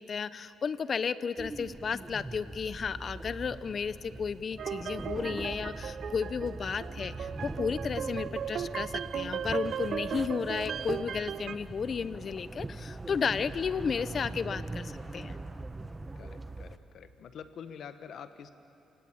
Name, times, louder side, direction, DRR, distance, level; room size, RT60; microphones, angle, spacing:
voice 1, 0.0-15.4, left 6 dB, 45° left, 15 dB, 0.8 m, -33 dB
sound 1, 1.4-16.8, right 2 dB, 20° right, 1.2 m, -42 dB
sound 2, 4.6-11.5, right 8 dB, 60° right, 0.7 m, -37 dB
voice 2, 16.2-18.5, left 7 dB, 70° left, 10 dB, 1.4 m, -46 dB
28.5 x 19.0 x 8.8 m, 2.9 s
cardioid pair, 90°, 0 cm